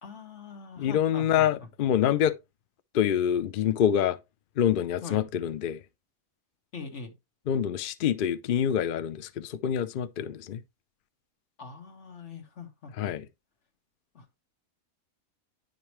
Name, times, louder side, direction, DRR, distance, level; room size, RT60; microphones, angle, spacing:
voice 1, 0.0-1.5 5.0-5.3 6.7-7.1 11.6-13.1 14.1-14.4, left 4 dB, 55° left, 1.6 m, -42 dB
voice 2, 0.8-2.3 2.9-4.2 4.6-5.8 7.5-10.6 13.0-13.2, left 9 dB, 75° left, 0.5 m, -26 dB
9.9 x 5.3 x 3.0 m
omnidirectional pair, 1.5 m